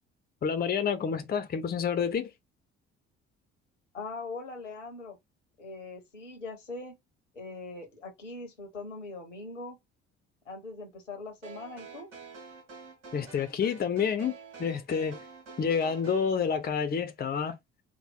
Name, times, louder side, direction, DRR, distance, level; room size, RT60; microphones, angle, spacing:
voice 1, 0.4-2.3 13.1-15.2 15.6-17.5, left 6 dB, 25° left, 0.7 m, -29 dB
voice 2, 3.9-5.2 5.6-7.0 7.3-9.8 10.4-12.1, left 3 dB, 85° left, 1.1 m, -41 dB
sound 1, 11.4-16.4, right 4 dB, 75° right, 1.4 m, -48 dB
3.7 x 2.1 x 4.4 m
figure-of-eight pair, 50°, 36 cm